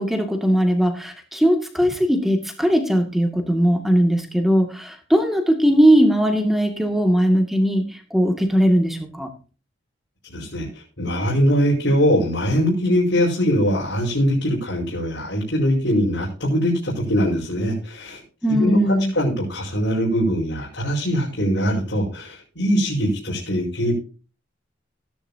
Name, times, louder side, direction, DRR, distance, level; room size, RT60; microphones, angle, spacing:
voice 1, 0.0-7.9 8.1-9.3 18.4-19.1, equal, ahead, 4 dB, 2.2 m, -19 dB
voice 2, 10.3-10.7 11.0-18.2 18.5-18.8 19.1-23.9, equal, 75° left, -5 dB, 5.2 m, -21 dB
17.0 x 10.5 x 2.8 m, 0.35 s
head